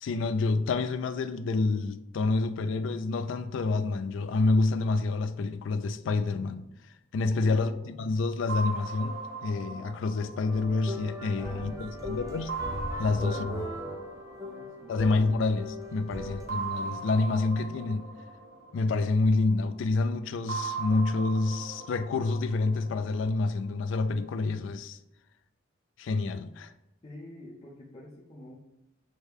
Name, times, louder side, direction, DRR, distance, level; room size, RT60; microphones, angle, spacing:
voice 1, 0.0-12.5 13.0-13.6 14.9-18.1 18.7-25.0 26.0-26.7, left 3 dB, 65° left, 0.3 m, -28 dB
voice 2, 7.3-8.2 11.4-12.4 13.0-14.1 14.4-15.2 16.0-16.5 27.0-28.6, left 1 dB, 25° left, 0.6 m, -48 dB
sound 1, 8.5-11.8 12.5-15.4 16.5-19.6 20.5-23.6, right 4 dB, 60° right, 0.9 m, -39 dB
sound 2, 10.5-16.5, equal, 15° right, 0.7 m, -38 dB
6.3 x 2.2 x 3.3 m
head